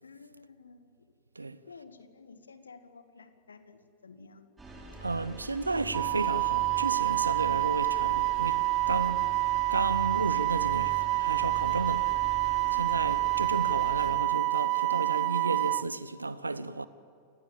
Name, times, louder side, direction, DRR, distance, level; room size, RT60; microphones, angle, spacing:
voice 1, 0.0-1.2 1.7-4.6 12.7-13.2, left 4 dB, 75° left, 1.9 m, -53 dB
sound 1, 4.6-14.2, right 3 dB, 10° right, 6.8 m, -45 dB
voice 2, 5.0-9.3 9.7-12.1 12.8-16.9, right 3 dB, 80° right, 1.0 m, -33 dB
Wind instrument woodwind instrument, 5.9-15.8, right 21 dB, 40° right, 0.5 m, -28 dB
28.5 x 21.5 x 8.7 m
figure-of-eight pair, 90°, 0 cm